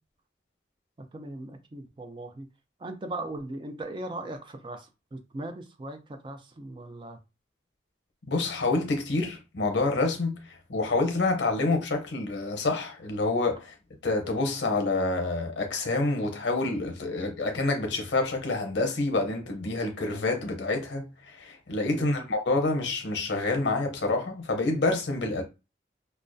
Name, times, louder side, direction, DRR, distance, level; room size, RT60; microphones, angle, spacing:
voice 1, 1.1-2.5 2.8-7.2 21.9-22.2, right 2 dB, 25° right, 0.3 m, -39 dB
voice 2, 8.3-10.4 10.7-13.7 14.0-25.4, left 2 dB, 80° left, 0.7 m, -27 dB
2.3 x 2.1 x 2.5 m
head